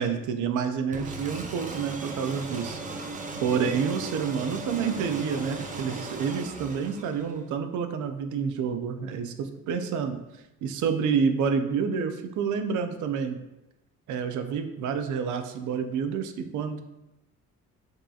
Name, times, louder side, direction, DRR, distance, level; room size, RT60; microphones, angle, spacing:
voice 1, 0.0-3.0 3.4-10.2 10.6-13.4 14.1-16.8, right 6 dB, 75° right, 8 dB, 0.5 m, -28 dB
sound 1, 0.9-7.5, right 3 dB, 25° right, 0.5 m, -37 dB
5.3 x 2.7 x 2.3 m, 0.93 s
cardioid pair, 90°, 30 cm